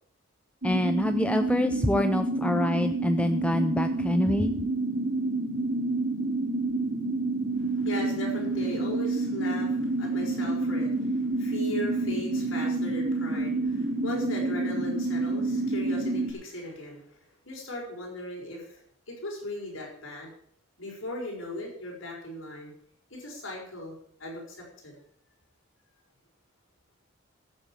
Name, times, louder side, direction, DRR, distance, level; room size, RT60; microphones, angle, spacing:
voice 1, 0.6-4.5, left 1 dB, 5° left, 8 dB, 0.5 m, -26 dB
sound 1, 0.6-16.3, right 2 dB, 55° right, 3.1 m, -28 dB
voice 2, 7.6-17.2 17.5-20.3 20.8-22.7 23.1-24.6 24.8-24.9, left 1 dB, 65° left, -2 dB, 5.9 m, -38 dB
14.5 x 7.2 x 7.4 m, 0.65 s
head